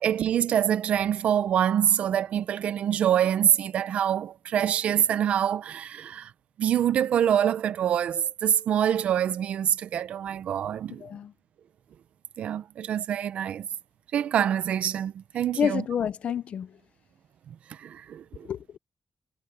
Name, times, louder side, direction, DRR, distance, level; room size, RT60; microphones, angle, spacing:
voice 1, 0.0-6.3 6.6-11.0 12.4-13.7 14.1-15.8 17.5-18.5, right 9 dB, 85° right, 0.8 m, -25 dB
voice 2, 11.0-11.3 15.6-16.7 18.5-18.8, left 8 dB, 70° left, 0.7 m, -29 dB
cardioid pair, 90°, 2 cm